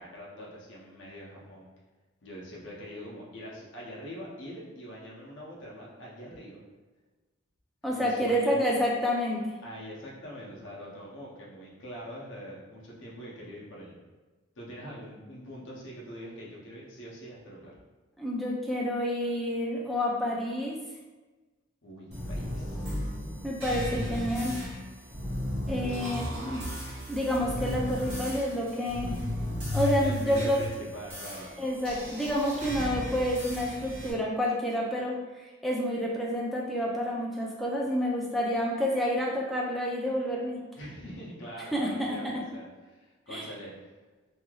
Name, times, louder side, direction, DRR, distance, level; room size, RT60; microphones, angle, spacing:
voice 1, 0.0-1.7 2.2-6.6 7.9-8.6 9.6-14.0 14.6-17.7 21.8-23.1 25.9-26.1 29.8-31.5 40.7-43.9, equal, 65° left, -5 dB, 0.7 m, -43 dB
voice 2, 7.8-9.5 18.2-20.8 23.4-24.6 25.7-26.6 27.1-29.2 29.7-30.6 31.6-40.6 41.7-42.3 43.3-43.5, equal, ahead, -4 dB, 0.3 m, -29 dB
sound 1, 22.1-34.1, left 1 dB, 55° right, 1.1 m, -35 dB
3.1 x 2.7 x 2.3 m, 1.2 s
head